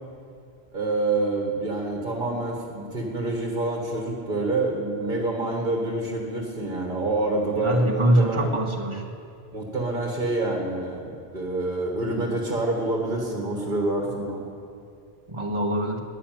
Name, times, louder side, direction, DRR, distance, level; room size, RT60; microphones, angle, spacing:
voice 1, 0.7-8.5 9.5-14.4, right 2 dB, 50° right, 0 dB, 1.9 m, -27 dB
voice 2, 7.6-9.0 15.3-16.0, right 1 dB, 30° right, 1 dB, 1.7 m, -23 dB
12.5 x 11.0 x 9.4 m, 2.4 s
omnidirectional pair, 1.1 m